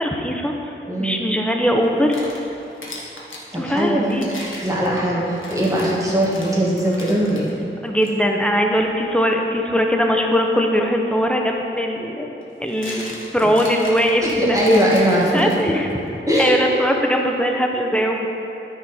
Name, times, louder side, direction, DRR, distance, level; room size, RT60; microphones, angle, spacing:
voice 1, 0.0-0.7 1.0-2.2 3.6-4.3 7.8-12.3 12.6-14.6 15.3-15.9 16.4-18.3, equal, 5° left, 1 dB, 0.9 m, -20 dB
voice 2, 0.9-1.2 3.5-4.2 4.6-7.5 14.2-15.7 16.3-16.6, equal, 15° right, -6 dB, 2.1 m, -20 dB
sound 1, 1.8-3.5 4.1-7.5 8.0-8.1 8.8-9.0 11.1-11.2 12.4-15.9, left 1 dB, 70° left, 1.4 m, -37 dB
12.5 x 5.1 x 4.4 m, 2.9 s
wide cardioid pair, 75°, 21 cm